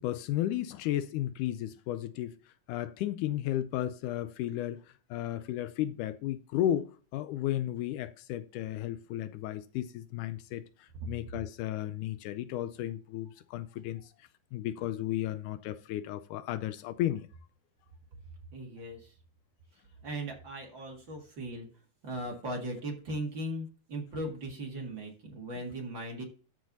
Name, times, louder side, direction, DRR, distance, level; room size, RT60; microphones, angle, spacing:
voice 1, 0.0-2.4 2.7-17.3, left 12 dB, 80° left, 2.0 m, -34 dB
voice 2, 18.5-19.1 20.0-21.7 22.0-26.2, right 1 dB, 40° right, 2.3 m, -38 dB
13.5 x 4.7 x 4.0 m
omnidirectional pair, 3.7 m